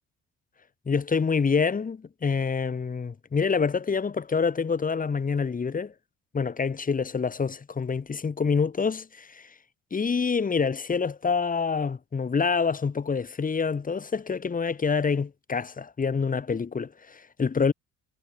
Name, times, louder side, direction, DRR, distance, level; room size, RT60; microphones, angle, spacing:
voice 1, 0.9-5.9 6.3-9.5 9.9-17.7, left 5 dB, 25° left, 1.1 m, -26 dB
cardioid pair, 90°, 30 cm